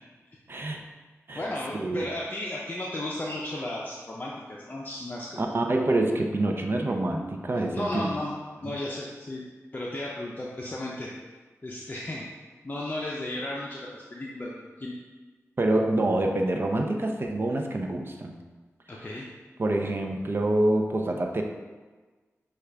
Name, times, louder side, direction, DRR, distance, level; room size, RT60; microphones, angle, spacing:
voice 1, 0.5-0.8 1.3-1.4 1.7-2.1 5.4-8.1 8.6-8.8 15.6-18.4 19.6-21.4, right 1 dB, 45° right, 2 dB, 0.5 m, -26 dB
voice 2, 1.3-5.6 7.7-8.3 8.6-9.4 9.7-11.1 11.6-12.2 12.6-14.9 18.9-19.3, left 1 dB, 35° left, -4 dB, 0.5 m, -34 dB
6.1 x 2.3 x 3.3 m, 1.3 s
wide cardioid pair, 60°, 5 cm